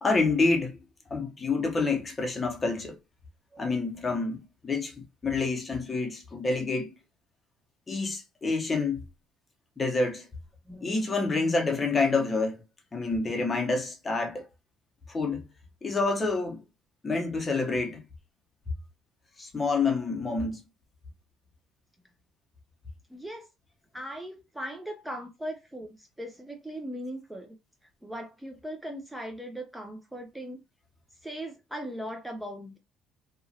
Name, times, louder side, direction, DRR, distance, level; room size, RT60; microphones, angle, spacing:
voice 1, 0.0-0.8 1.1-3.0 3.6-6.9 7.9-9.0 9.8-10.3 10.8-12.6 12.9-14.4 15.1-15.4 15.8-16.6 17.0-18.0 19.4-20.6, left 3 dB, 25° left, 0.9 m, -28 dB
voice 2, 10.7-11.5 23.1-23.5 23.9-27.6 28.0-30.6 31.2-32.8, equal, 5° right, 0.5 m, -39 dB
2.9 x 2.4 x 2.8 m
cardioid pair, 100°, 0 cm